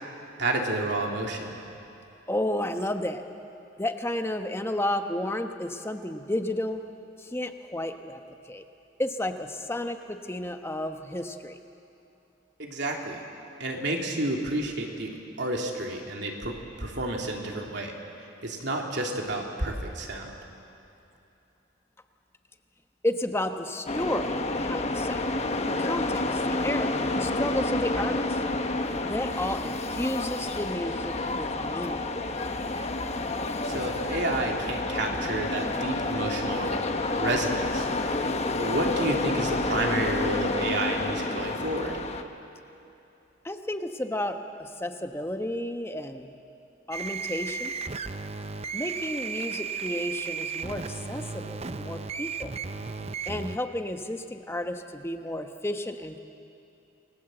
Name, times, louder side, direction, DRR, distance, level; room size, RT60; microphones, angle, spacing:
voice 1, 0.4-1.5 12.6-13.2 13.6-17.9 18.4-20.3 33.6-36.7 37.2-38.2 38.6-41.9, right 1 dB, 60° right, 1 dB, 3.1 m, -30 dB
voice 2, 2.3-3.2 3.8-6.8 7.2-8.6 9.0-11.6 23.0-25.3 25.7-28.4 29.0-32.0 43.4-46.3 46.9-47.7 48.7-52.5 53.3-56.2, left 1 dB, 15° left, 6 dB, 1.0 m, -32 dB
sound 1, 23.9-42.2, left 2 dB, 35° left, 1.1 m, -29 dB
sound 2, 46.9-53.6, right 5 dB, 35° right, 0.6 m, -35 dB
28.5 x 20.5 x 7.9 m, 2.8 s
head